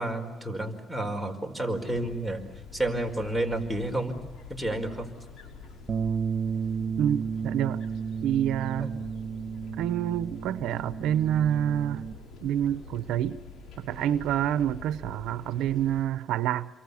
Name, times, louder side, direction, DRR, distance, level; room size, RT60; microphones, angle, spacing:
voice 1, 0.0-2.4 2.7-4.2 4.5-5.1 8.8-8.9, right 1 dB, 5° left, 8 dB, 4.8 m, -30 dB
sound 1, 1.7-16.0, left 4 dB, 80° left, 4.9 m, -46 dB
Bass guitar, 5.9-12.1, right 6 dB, 50° right, 1.5 m, -32 dB
voice 2, 7.0-7.8 8.2-8.9 9.8-12.1 12.4-13.4 13.8-16.7, right 10 dB, 90° right, 14 dB, 0.8 m, -27 dB
28.0 x 23.5 x 7.1 m, 1.2 s
cardioid pair, 90°, 0 cm